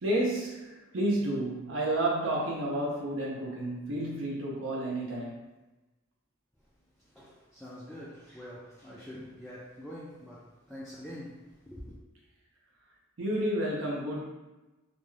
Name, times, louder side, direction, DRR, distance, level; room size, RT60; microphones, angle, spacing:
voice 1, 0.0-5.4 13.2-14.2, right 1 dB, 65° right, 0.6 m, -31 dB
voice 2, 7.0-12.0, equal, ahead, 0.3 m, -45 dB
2.5 x 2.2 x 3.1 m
head